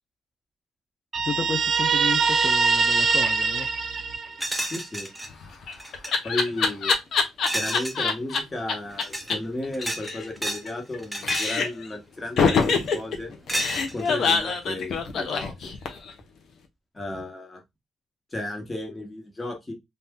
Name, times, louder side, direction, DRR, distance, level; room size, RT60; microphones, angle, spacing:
Guitar, 1.1-4.7, right 5 dB, 45° right, 0.3 m, -23 dB
voice 1, 1.2-3.7, left 5 dB, 35° left, 0.4 m, -32 dB
sound 1, 4.4-5.3 5.7-6.1 7.5-8.0 8.9-9.3 9.7-10.7 11.0-11.6 12.6-12.9 13.5-14.2, equal, 5° right, 0.7 m, -31 dB
voice 2, 4.7-5.1 6.2-7.0 7.5-13.3 13.9-15.5 16.9-17.6 18.3-19.7, left 1 dB, 20° left, 1.4 m, -34 dB
Laughter, 5.3-8.4 8.7-8.8 9.0-9.1 9.3-9.4 9.6-11.0 11.2-11.9 12.4-16.1, left 5 dB, 60° left, 0.8 m, -24 dB
2.7 x 2.6 x 3.5 m
cardioid pair, 95°, 0 cm